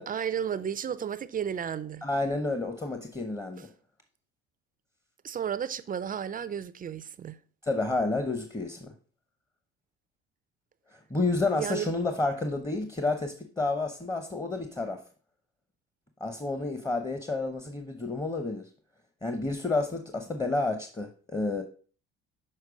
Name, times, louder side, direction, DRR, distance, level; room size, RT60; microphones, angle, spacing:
voice 1, 0.1-2.1 5.2-7.4 11.6-11.9, right 8 dB, 30° right, 0.4 m, -33 dB
voice 2, 2.0-3.7 7.6-8.9 10.9-15.0 16.2-18.7 19.2-21.6, left 3 dB, 15° left, 0.8 m, -30 dB
6.6 x 4.5 x 4.8 m
cardioid pair, 95°, 29 cm